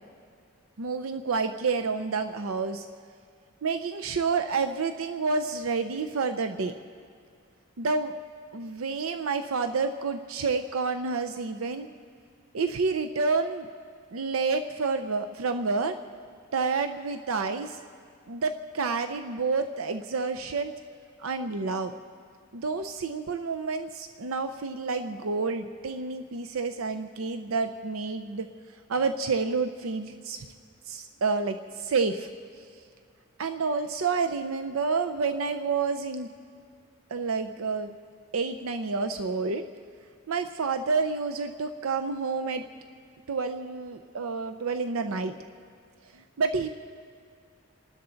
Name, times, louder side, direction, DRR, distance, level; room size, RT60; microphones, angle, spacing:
voice 1, 0.8-2.9 3.6-6.7 7.8-8.1 8.5-11.9 12.5-13.7 14.1-16.0 16.5-17.8 18.3-20.7 21.2-21.9 22.5-28.5 28.9-30.5 30.8-32.3 32.6-32.7 33.4-36.3 37.1-37.9 38.3-39.6 40.3-42.6 43.3-45.3 46.1-46.7, right 4 dB, 90° right, 8 dB, 0.6 m, -29 dB
28.5 x 12.5 x 3.9 m, 2.3 s
head